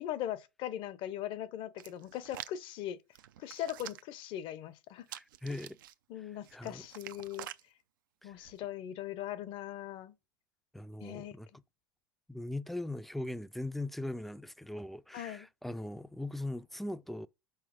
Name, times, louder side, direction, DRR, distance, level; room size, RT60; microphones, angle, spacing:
voice 1, 0.0-3.0 3.4-5.1 6.1-7.5 8.2-10.1 11.0-11.4 15.1-15.5, left 11 dB, 50° left, 0.8 m, -40 dB
Hands, 1.8-2.6 3.1-4.2 5.1-5.9 6.4-7.6 8.3-8.6, right 13 dB, 75° right, 0.5 m, -47 dB
voice 2, 5.1-5.8 6.5-6.8 8.2-8.3 10.7-11.5 12.3-17.3, left 1 dB, ahead, 0.4 m, -40 dB
5.7 x 4.6 x 5.1 m
hypercardioid pair, 90°, 11 cm